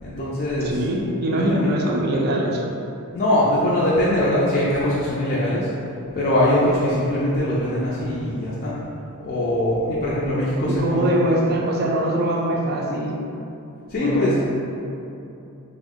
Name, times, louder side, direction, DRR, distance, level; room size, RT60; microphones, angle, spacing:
voice 1, 0.0-0.8 1.3-1.7 3.1-5.7 6.1-8.8 9.2-11.1 13.9-14.4, left 1 dB, 40° left, -9 dB, 0.4 m, -22 dB
voice 2, 0.6-2.6 10.7-13.2 14.0-14.4, right 1 dB, 45° right, -2 dB, 0.3 m, -22 dB
3.5 x 2.0 x 3.6 m, 2.7 s
head